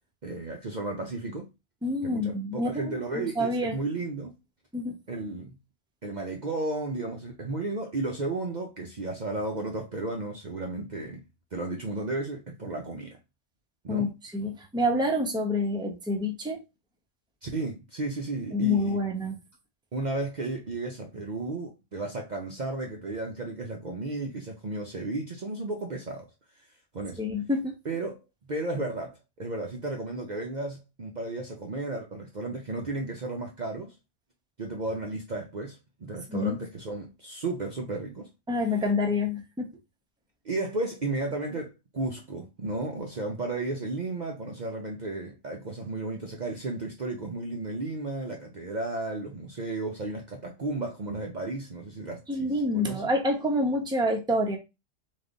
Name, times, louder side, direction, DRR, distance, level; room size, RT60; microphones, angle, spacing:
voice 1, 0.2-1.5 2.0-4.3 5.1-5.6 6.0-11.2 11.5-13.2 13.8-14.1 17.4-19.0 19.9-26.3 26.9-27.2 27.8-28.2 28.5-33.9 34.6-38.3 40.4-53.0, right 2 dB, 45° right, 0.7 m, -33 dB
voice 2, 1.8-3.7 4.7-5.0 13.9-14.1 14.3-16.6 18.5-19.3 27.2-27.7 36.3-36.6 38.5-39.7 52.3-54.6, left 1 dB, 5° right, 0.7 m, -27 dB
3.5 x 3.1 x 3.9 m
omnidirectional pair, 1.2 m